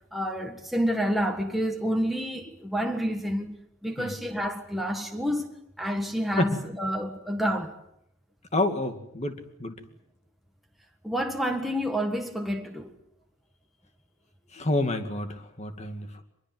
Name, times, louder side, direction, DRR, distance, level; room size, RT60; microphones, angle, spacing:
voice 1, 0.1-3.5 3.8-7.7 11.0-13.0, equal, ahead, 1.7 m, -29 dB
voice 2, 8.5-9.8 14.5-16.2, left 1 dB, 30° left, 2.3 m, -28 dB
24.5 x 22.0 x 7.8 m
head